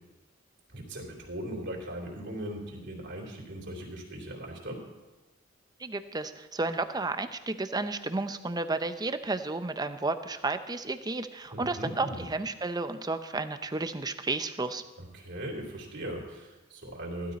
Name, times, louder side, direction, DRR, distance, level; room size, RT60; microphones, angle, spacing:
voice 1, 0.7-4.8 11.5-12.3 15.0-17.3, right 1 dB, 60° right, -1 dB, 3.3 m, -39 dB
voice 2, 5.8-14.8, right 3 dB, 20° right, 9 dB, 0.7 m, -32 dB
15.5 x 12.5 x 4.2 m, 1.1 s
head